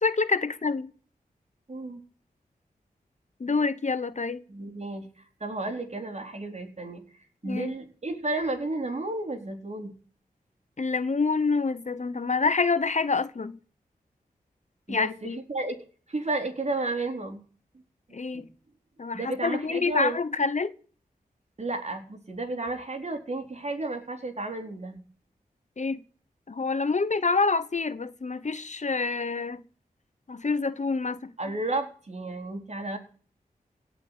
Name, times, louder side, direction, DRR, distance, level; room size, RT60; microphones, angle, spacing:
voice 1, 0.0-0.9 3.4-4.4 7.4-7.7 10.8-13.6 14.9-15.4 18.1-18.5 19.0-20.7 25.8-26.0 26.5-29.6 30.3-31.2, left 4 dB, 50° left, 1.2 m, -27 dB
voice 2, 1.7-2.0 4.5-7.0 7.4-9.9 14.9-17.4 18.3-18.4 19.1-20.2 21.6-25.0 31.4-33.0, right 2 dB, 45° right, 4.0 m, -32 dB
17.5 x 6.3 x 9.3 m
cardioid pair, 55°, 16 cm